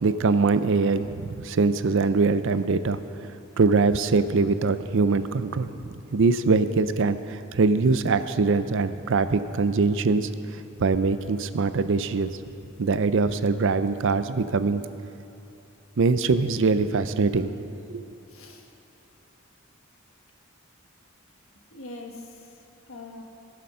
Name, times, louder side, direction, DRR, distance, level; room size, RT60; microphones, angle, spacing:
voice 1, 0.0-3.3 3.6-12.4 12.8-14.8 16.0-17.6 17.9-18.0, right 4 dB, 65° right, 12 dB, 0.5 m, -23 dB
voice 2, 18.3-18.7 21.7-23.2, left 2 dB, 70° left, 1 dB, 1.6 m, -43 dB
19.0 x 6.7 x 5.6 m, 2.8 s
head